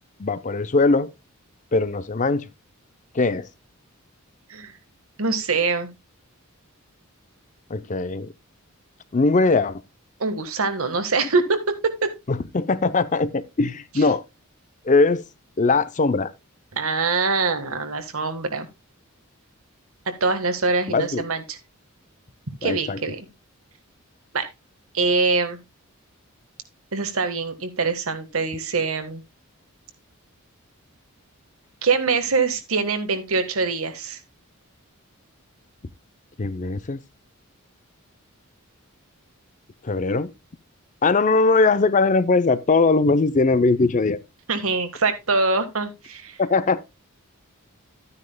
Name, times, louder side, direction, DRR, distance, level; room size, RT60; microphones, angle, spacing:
voice 1, 0.2-1.1 1.7-2.5 3.1-3.5 7.7-8.3 9.1-9.8 12.3-14.2 14.8-15.2 15.6-16.3 20.9-21.2 22.6-23.0 36.4-37.0 39.8-40.3 41.0-44.2 46.4-46.8, left 3 dB, 35° left, 0.5 m, -20 dB
voice 2, 5.2-5.9 10.2-12.1 16.7-18.7 20.2-21.6 22.6-23.3 24.3-24.5 24.9-25.6 26.9-29.2 31.8-34.2 44.5-46.4, right 4 dB, 70° right, 1.5 m, -24 dB
12.5 x 9.6 x 2.2 m
head